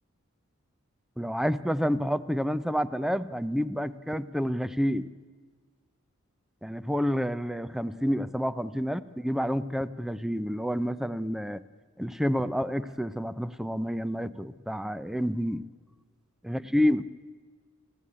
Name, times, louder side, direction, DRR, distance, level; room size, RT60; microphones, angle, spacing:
voice 1, 1.2-5.1 6.6-11.6 12.0-15.6 16.4-17.1, equal, ahead, 14 dB, 0.6 m, -29 dB
29.5 x 16.0 x 8.7 m, 1.5 s
head